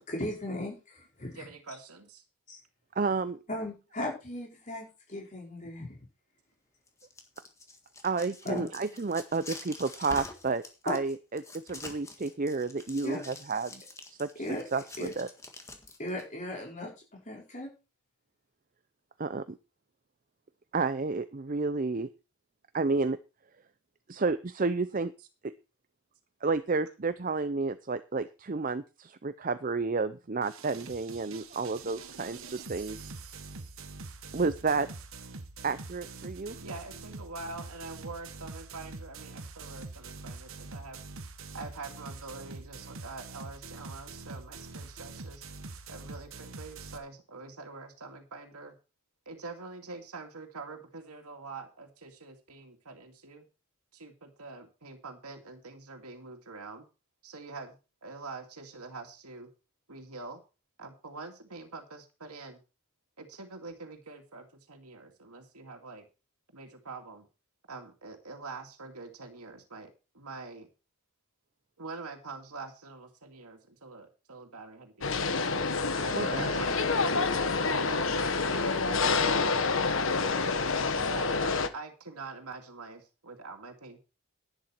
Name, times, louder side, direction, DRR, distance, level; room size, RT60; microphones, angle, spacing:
voice 1, 0.0-1.4 2.5-2.6 3.5-6.0 8.5-8.7 10.9-11.0 13.0-13.2 14.4-14.6 15.0-15.1 16.0-17.7, left 1 dB, 35° left, -1 dB, 5.2 m, -37 dB
voice 2, 1.3-2.2 36.6-41.0 41.5-45.5 45.9-48.8 49.3-53.5 53.9-56.9 57.2-59.5 59.9-60.4 60.8-62.6 63.2-66.1 66.5-67.3 67.7-70.7 71.8-75.5 76.0-76.8 77.6-79.6 80.9-81.4 81.7-84.0, right 3 dB, 90° right, 3 dB, 2.5 m, -45 dB
voice 3, 2.9-3.4 8.0-13.8 14.1-14.4 14.7-15.3 19.2-19.6 20.7-22.1 22.7-23.2 24.1-25.1 25.4-25.5 26.4-33.1 34.3-34.9 35.6-36.6 76.1-76.5, right 4 dB, 40° right, 12 dB, 0.5 m, -31 dB
sound 1, 6.9-16.2, left 2 dB, 15° left, 1.7 m, -46 dB
sound 2, 30.4-47.0, right 3 dB, 65° right, 1.5 m, -44 dB
sound 3, 75.0-81.7, left 4 dB, 60° left, 1.2 m, -27 dB
11.0 x 10.5 x 4.5 m, 0.31 s
head